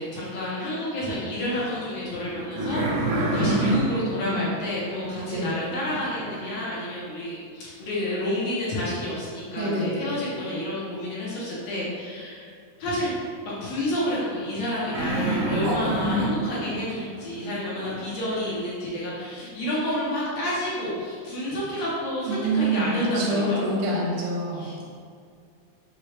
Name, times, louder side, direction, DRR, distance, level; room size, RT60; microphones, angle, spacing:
voice 1, 0.0-12.5 12.8-13.1 13.4-23.6 24.5-24.8, left 1 dB, 70° left, -7 dB, 1.7 m, -30 dB
sound 1, 1.4-6.5 14.9-18.6, right 1 dB, 90° right, 2.3 m, -29 dB
voice 2, 3.5-4.5 5.2-5.6 9.6-10.2 22.3-24.8, right 2 dB, 70° right, -4 dB, 1.6 m, -26 dB
6.1 x 2.3 x 3.1 m, 2.2 s
omnidirectional pair, 3.7 m